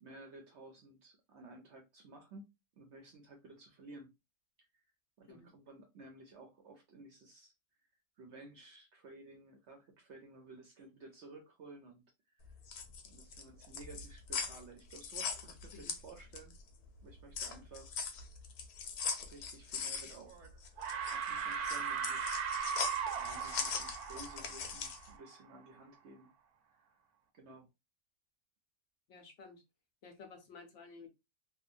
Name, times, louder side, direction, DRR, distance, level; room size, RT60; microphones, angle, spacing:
voice 1, 0.0-2.4 2.8-4.1 5.2-7.5 8.2-12.4 13.0-16.6 17.0-18.0 19.2-20.5 21.1-22.4 23.2-26.3 26.7-26.9 27.3-27.7, right 2 dB, 65° right, 0.7 m, -54 dB
sound 1, 12.5-16.6 17.0-25.1, left 6 dB, 85° left, 1.1 m, -41 dB
sound 2, 20.1-20.5 20.8-25.4, right 7 dB, 90° right, 1.1 m, -38 dB
voice 2, 29.1-29.6 30.0-31.1, left 4 dB, 65° left, 0.9 m, -53 dB
2.8 x 2.1 x 2.4 m
omnidirectional pair, 1.6 m